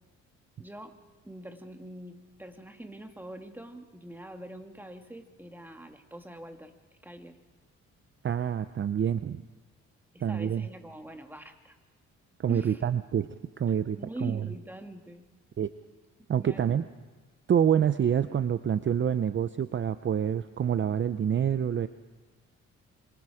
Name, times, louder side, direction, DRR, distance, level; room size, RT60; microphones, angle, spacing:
voice 1, 0.6-0.9 1.2-6.7 7.0-7.4 10.1-11.8 12.5-12.8 14.0-15.2 16.3-16.7, right 1 dB, 5° right, 5 dB, 2.2 m, -43 dB
voice 2, 8.2-9.4 10.2-10.7 12.4-13.3 13.6-14.5 15.6-15.7 16.3-16.9 17.5-21.9, right 8 dB, 40° right, 12 dB, 0.7 m, -27 dB
26.5 x 25.5 x 5.0 m, 1.4 s
cardioid pair, 90°, 30 cm